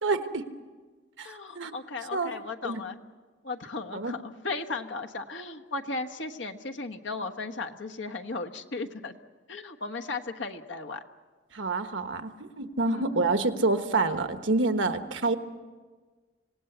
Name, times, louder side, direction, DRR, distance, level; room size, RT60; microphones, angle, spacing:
voice 1, 0.0-0.5 1.2-1.7 2.1-2.3 2.6-2.8 3.9-4.1 11.5-15.4, right 3 dB, 90° right, 8 dB, 1.3 m, -27 dB
voice 2, 1.2-3.0 3.4-9.1 9.5-11.0 12.8-13.0, left 3 dB, 80° left, 5 dB, 1.3 m, -36 dB
26.5 x 18.0 x 8.0 m, 1.4 s
head